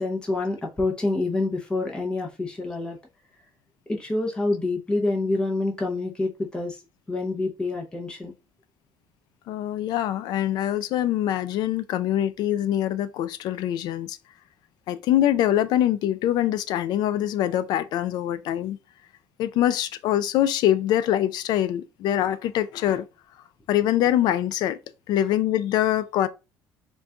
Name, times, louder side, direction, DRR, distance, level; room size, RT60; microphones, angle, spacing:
voice 1, 0.0-3.0 3.9-6.8 7.1-8.3, left 2 dB, 10° left, 0.6 m, -27 dB
voice 2, 9.5-14.2 14.9-18.8 19.4-23.1 23.7-24.8 25.1-26.3, left 12 dB, 60° left, 0.4 m, -24 dB
3.9 x 2.3 x 3.5 m
cardioid pair, 155°, 8 cm